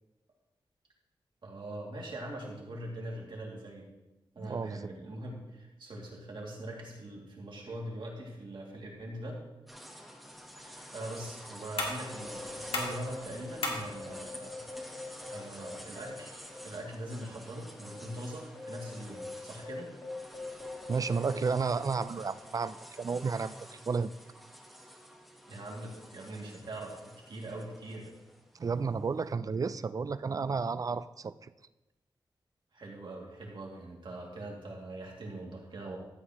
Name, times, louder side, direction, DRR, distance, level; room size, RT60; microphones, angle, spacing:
voice 1, 1.4-3.9 4.3-9.4 10.6-14.8 15.3-16.4 16.6-19.9 25.5-26.9 27.3-28.1 32.7-36.0, right 1 dB, 65° right, -2 dB, 2.4 m, -42 dB
voice 2, 4.4-4.8 20.9-24.1 28.5-31.5, right 5 dB, 40° right, 14 dB, 0.4 m, -32 dB
sound 1, 9.7-29.2, equal, ahead, 1.1 m, -50 dB
sound 2, 10.2-17.2, left 2 dB, 80° left, 1.8 m, -42 dB
sound 3, 12.0-16.8 17.1-17.2 17.8-22.6, left 3 dB, 35° left, 2.5 m, -44 dB
13.0 x 8.3 x 3.0 m, 1.0 s
wide cardioid pair, 100°, 9 cm